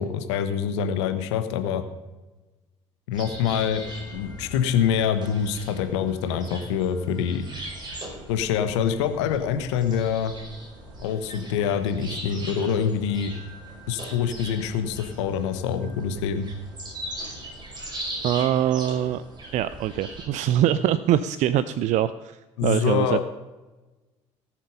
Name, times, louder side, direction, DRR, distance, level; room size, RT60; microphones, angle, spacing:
voice 1, 0.0-1.8 3.1-3.8 4.1-7.4 8.3-10.3 11.0-13.3 13.9-16.5 22.6-23.2, left 8 dB, 70° left, 9 dB, 1.2 m, -25 dB
sound 1, 3.1-20.2, right 1 dB, 30° right, 5.6 m, -40 dB
voice 2, 18.2-19.2 19.5-23.2, right 11 dB, 50° right, 15 dB, 0.5 m, -23 dB
18.0 x 7.4 x 5.3 m, 1.1 s
figure-of-eight pair, 55°, 15 cm